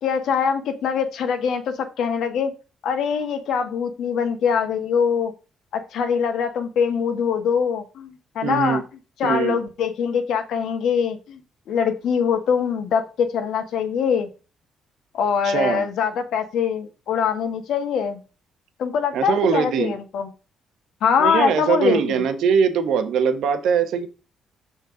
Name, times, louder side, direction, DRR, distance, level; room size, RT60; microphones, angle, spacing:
voice 1, 0.0-2.5 2.8-5.3 5.7-8.8 9.2-11.4 11.7-14.3 15.1-18.2 18.8-20.3 21.0-22.2, left 6 dB, 75° left, 6 dB, 1.7 m, -23 dB
voice 2, 8.4-8.8 9.2-9.6 15.4-15.8 19.1-19.9 21.2-24.1, right 6 dB, 80° right, 9 dB, 1.3 m, -21 dB
6.8 x 4.4 x 5.1 m, 0.32 s
cardioid pair, 90°, 0 cm